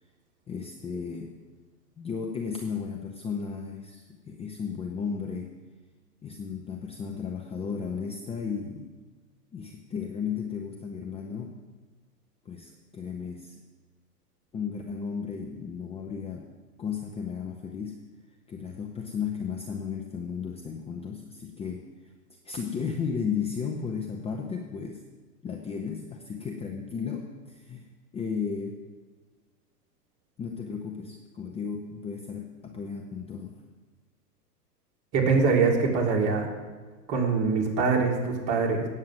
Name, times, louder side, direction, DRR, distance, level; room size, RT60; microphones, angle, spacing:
voice 1, 0.5-1.3 2.0-5.5 6.2-8.9 9.5-11.6 12.5-13.5 14.5-16.5 16.8-18.0 18.5-21.9 22.4-25.0 25.4-27.9 28.1-28.8 30.4-33.6, left 6 dB, 15° left, 1 dB, 0.6 m, -34 dB
voice 2, 35.1-36.5 37.1-38.9, right 4 dB, 40° right, -1 dB, 2.8 m, -23 dB
8.8 x 7.3 x 7.8 m, 1.4 s
hypercardioid pair, 125°, 48 cm